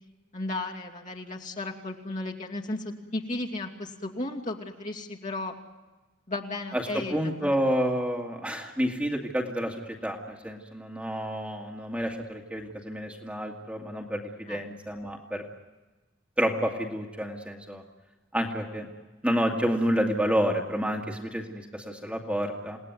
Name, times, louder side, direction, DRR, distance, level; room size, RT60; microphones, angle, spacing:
voice 1, 0.3-5.5 6.3-7.6 14.5-14.6, left 2 dB, 40° left, -1 dB, 2.6 m, -35 dB
voice 2, 6.7-15.4 16.4-17.8 18.3-18.9 19.2-22.8, equal, 5° right, 0 dB, 2.2 m, -29 dB
28.5 x 18.5 x 9.5 m, 1.2 s
head